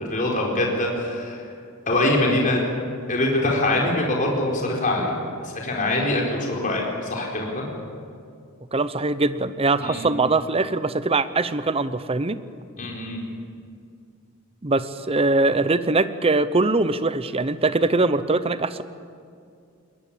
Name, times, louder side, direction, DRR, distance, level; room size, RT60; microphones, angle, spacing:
voice 1, 0.0-1.4 1.9-2.6 3.1-5.2 5.6-7.7 9.8-10.1 12.8-13.2, left 1 dB, 40° left, -1 dB, 4.6 m, -23 dB
voice 2, 8.7-12.4 14.6-18.8, right 3 dB, 30° right, 13 dB, 0.8 m, -22 dB
21.0 x 21.0 x 8.7 m, 2.4 s
head